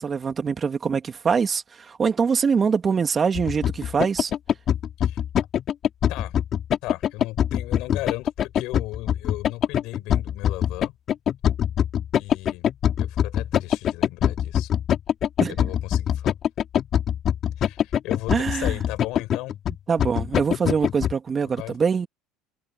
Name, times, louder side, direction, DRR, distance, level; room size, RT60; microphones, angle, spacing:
voice 1, 0.0-4.3 15.4-15.6 18.3-18.7 19.9-22.1, right 6 dB, 30° right, 2.6 m, -24 dB
sound 1, 3.3-21.1, left 10 dB, 45° left, 5.0 m, -23 dB
voice 2, 6.8-11.0 12.1-12.7 13.0-14.7 15.5-16.3 17.6-19.6 21.6-21.8, left 20 dB, 70° left, 6.5 m, -36 dB
supercardioid pair, 100°, 0 cm